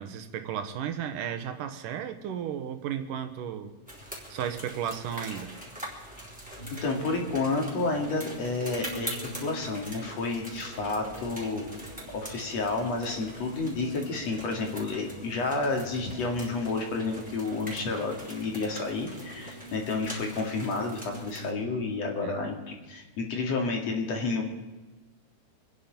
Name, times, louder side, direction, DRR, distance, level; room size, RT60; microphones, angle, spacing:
voice 1, 0.0-3.7 4.3-5.6 22.2-22.4, right 9 dB, 85° right, 7 dB, 2.8 m, -34 dB
sound 1, 3.9-21.5, right 1 dB, ahead, 3.9 m, -44 dB
sound 2, 6.6-22.3, equal, 20° left, 0.9 m, -45 dB
voice 2, 6.7-11.7 12.1-24.4, left 3 dB, 55° left, 1 dB, 3.3 m, -30 dB
26.5 x 10.0 x 5.3 m, 1.2 s
omnidirectional pair, 3.7 m